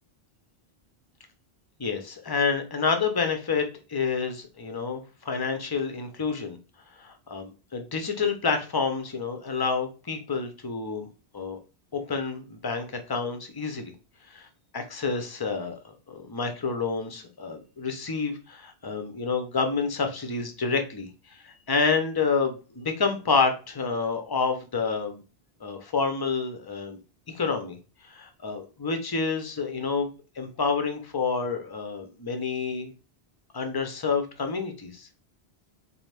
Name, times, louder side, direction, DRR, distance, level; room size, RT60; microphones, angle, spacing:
voice 1, 1.8-6.6 6.9-11.1 11.3-11.6 11.9-13.9 14.3-14.5 14.7-25.2 25.6-27.0 27.3-27.8 28.0-30.1 30.4-32.9 33.5-35.1, left 5 dB, 25° left, 6 dB, 0.6 m, -28 dB
4.1 x 2.7 x 3.3 m, 0.33 s
omnidirectional pair, 1.1 m